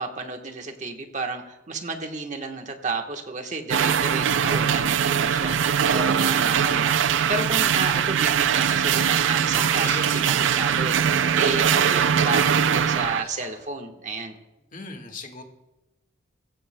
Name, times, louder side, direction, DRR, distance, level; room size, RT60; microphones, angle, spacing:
voice 1, 0.0-14.3, right 3 dB, 35° right, 4 dB, 1.2 m, -32 dB
sound 1, 3.7-13.2, right 8 dB, 70° right, 0.4 m, -21 dB
Fowl, 8.6-13.6, left 1 dB, 15° left, 5.1 m, -41 dB
voice 2, 14.7-15.4, left 3 dB, 40° left, 4 dB, 1.6 m, -38 dB
20.0 x 16.0 x 2.2 m, 1.0 s
head